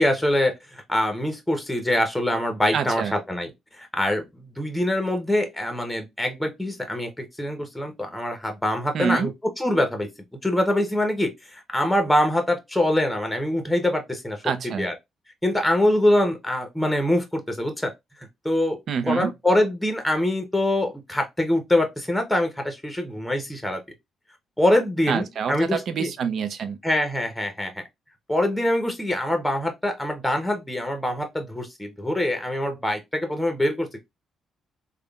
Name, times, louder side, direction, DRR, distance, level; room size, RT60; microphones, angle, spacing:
voice 1, 0.0-3.5 3.7-9.3 9.6-10.1 10.4-14.4 14.8-14.9 15.4-17.9 18.4-18.8 19.0-23.8 24.6-26.1 26.8-27.8 28.3-34.0, left 1 dB, 5° left, 0.8 m, -24 dB
voice 2, 2.7-3.2 8.9-9.3 14.4-14.9 18.9-19.3 25.1-26.8, right 7 dB, 60° right, 0.5 m, -26 dB
3.5 x 2.1 x 2.3 m
cardioid pair, 95°, 0 cm